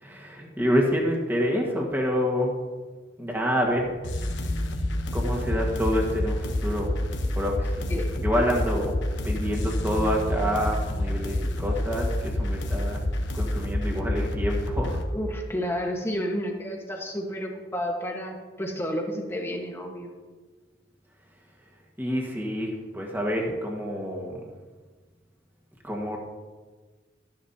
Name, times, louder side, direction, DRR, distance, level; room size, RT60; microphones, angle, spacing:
voice 1, 0.0-2.5 3.2-3.9 5.1-6.9 7.3-8.9 9.2-13.0 13.3-15.0 22.0-24.4 25.8-26.2, equal, 10° right, -1 dB, 1.5 m, -27 dB
sound 1, 4.0-15.0, left 1 dB, 80° left, 1.1 m, -28 dB
voice 2, 15.1-20.1, equal, 15° left, 0 dB, 1.3 m, -31 dB
13.0 x 10.5 x 2.8 m, 1.4 s
head